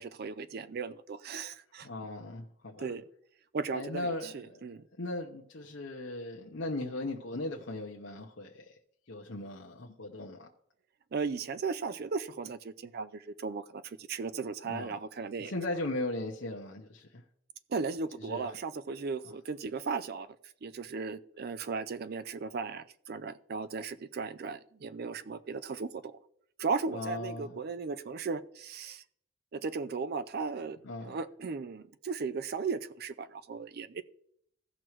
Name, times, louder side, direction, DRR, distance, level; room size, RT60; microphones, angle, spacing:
voice 1, 0.0-1.9 2.8-3.0 3.5-4.8 11.1-15.5 17.7-20.4 20.6-26.2 26.6-29.0 29.5-30.8 31.0-34.0, right 4 dB, 50° right, 0.4 m, -36 dB
voice 2, 1.8-2.9 3.7-8.7 9.1-10.5 14.6-15.0 15.4-17.2 18.2-18.5 26.9-27.6 30.8-31.2, left 2 dB, 65° left, 0.9 m, -38 dB
16.0 x 6.1 x 3.1 m
head